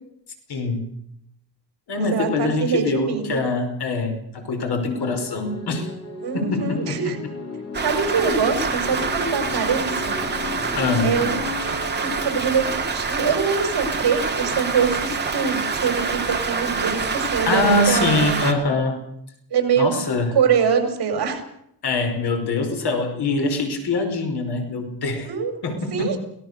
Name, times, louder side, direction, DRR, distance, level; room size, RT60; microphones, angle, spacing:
voice 1, 0.5-0.8 1.9-5.9 6.3-7.1 10.8-11.1 17.5-19.0 19.8-20.3 21.8-25.3 25.6-26.2, left 3 dB, 65° left, 5 dB, 5.2 m, -23 dB
voice 2, 1.9-3.4 6.2-7.2 7.8-10.2 11.0-11.4 12.0-18.4 19.5-19.9 20.3-21.4 25.2-25.5 25.9-26.2, right 6 dB, 65° right, 6 dB, 5.5 m, -23 dB
sound 1, 5.0-13.4, left 4 dB, 40° left, 4.0 m, -35 dB
Rain, 7.7-18.5, right 4 dB, 25° right, 2.6 m, -26 dB
24.0 x 18.0 x 6.8 m, 0.76 s
wide cardioid pair, 155°, 41 cm